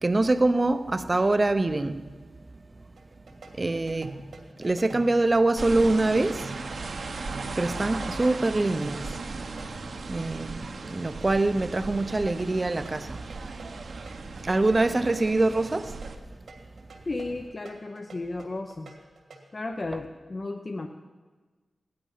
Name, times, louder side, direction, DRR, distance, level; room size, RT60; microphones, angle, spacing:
voice 1, 0.0-2.2 3.5-4.2 4.6-6.5 7.5-9.5 10.1-13.4 13.7-16.0, right 2 dB, 30° right, 0.7 m, -25 dB
sound 1, 3.0-9.7 12.1-19.5, right 2 dB, 85° right, 2.5 m, -46 dB
sound 2, 5.6-16.2, right 3 dB, 65° right, 1.1 m, -37 dB
voice 2, 17.1-18.9 19.5-20.9, left 2 dB, 40° left, 0.7 m, -34 dB
16.5 x 11.5 x 5.7 m
wide cardioid pair, 100°, 0 cm